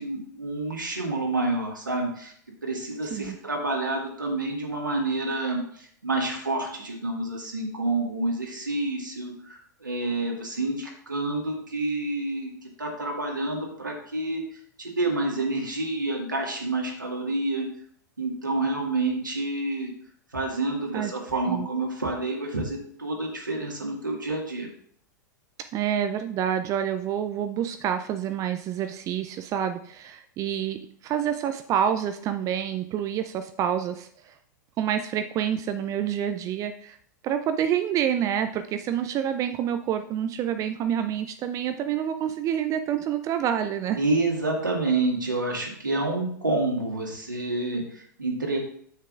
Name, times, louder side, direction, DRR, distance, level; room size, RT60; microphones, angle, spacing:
voice 1, 0.0-2.3 2.6-14.5 14.8-17.7 18.2-19.9 20.3-24.7 44.0-48.6, right 2 dB, 90° right, 0 dB, 1.8 m, -28 dB
voice 2, 25.7-34.3 34.8-37.0 37.2-44.0, right 9 dB, 35° right, 9 dB, 0.5 m, -28 dB
9.0 x 7.4 x 2.5 m, 0.62 s
figure-of-eight pair, 95°, 10 cm